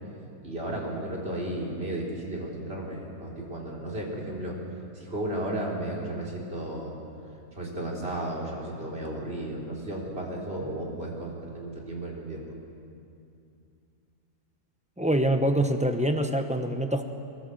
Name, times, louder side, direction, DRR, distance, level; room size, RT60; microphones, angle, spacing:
voice 1, 0.4-4.6 4.9-7.0 7.5-12.4, right 1 dB, 40° right, -3 dB, 4.0 m, -34 dB
voice 2, 15.0-17.0, right 1 dB, 5° right, 6 dB, 0.8 m, -25 dB
21.5 x 19.0 x 8.0 m, 2.6 s
omnidirectional pair, 1.6 m